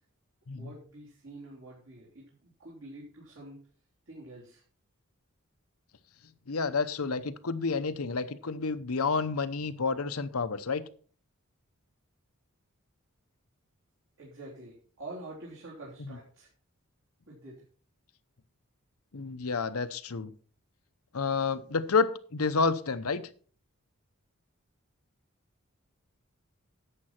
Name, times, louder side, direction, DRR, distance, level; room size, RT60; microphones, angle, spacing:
voice 1, 0.6-3.6 4.1-4.6 14.2-16.5 17.3-17.6, right 2 dB, 70° right, -5 dB, 3.6 m, -47 dB
voice 2, 6.5-10.8 16.0-16.2 19.1-20.3 21.1-23.2, left 4 dB, 85° left, 11 dB, 0.8 m, -30 dB
11.0 x 7.6 x 4.4 m, 0.43 s
head